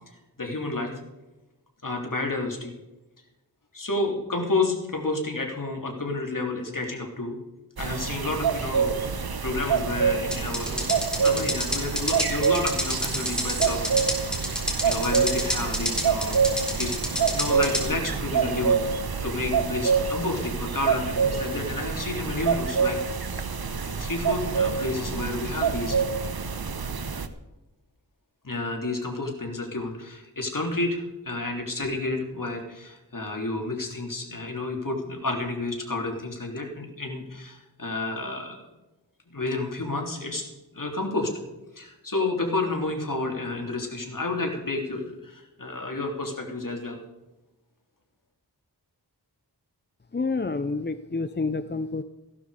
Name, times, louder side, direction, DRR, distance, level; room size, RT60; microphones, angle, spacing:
voice 1, 0.4-1.0 1.8-2.7 3.7-7.4 7.8-14.5 14.8-16.4 16.8-18.8 19.2-23.0 23.8-26.0 28.4-38.6 39.3-40.4 40.7-41.3 41.7-47.0, left 2 dB, 50° left, 1 dB, 3.3 m, -30 dB
sound 1, 7.8-27.3, right 6 dB, 60° right, 1.0 m, -26 dB
sound 2, 10.3-17.9, equal, ahead, 4.0 m, -29 dB
voice 2, 50.1-52.0, left 3 dB, 25° left, 11 dB, 0.6 m, -28 dB
15.0 x 12.0 x 5.0 m, 1.0 s
wide cardioid pair, 70°, 41 cm